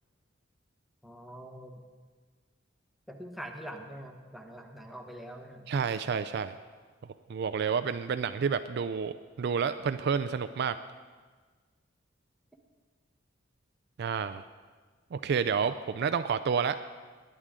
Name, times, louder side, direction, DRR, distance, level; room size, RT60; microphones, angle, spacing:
voice 1, 1.0-1.8 3.1-5.7, equal, ahead, 2 dB, 1.1 m, -44 dB
voice 2, 5.7-6.6 7.3-10.8 14.0-14.4 15.1-16.8, right 6 dB, 60° right, 11 dB, 0.4 m, -29 dB
20.5 x 9.9 x 3.7 m, 1.4 s
head